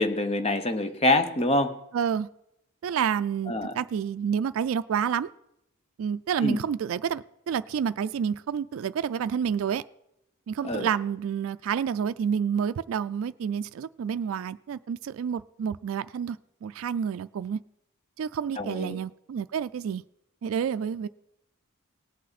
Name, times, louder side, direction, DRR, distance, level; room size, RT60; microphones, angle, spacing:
voice 1, 0.0-1.8 3.5-3.7 6.4-6.6 10.6-10.9 18.6-19.0, left 2 dB, 30° left, 8 dB, 0.9 m, -25 dB
voice 2, 1.9-2.3 2.8-5.3 6.0-9.8 10.5-17.6 18.2-20.0 20.4-21.1, right 7 dB, 75° right, 12 dB, 0.3 m, -29 dB
18.0 x 8.4 x 4.1 m, 0.83 s
head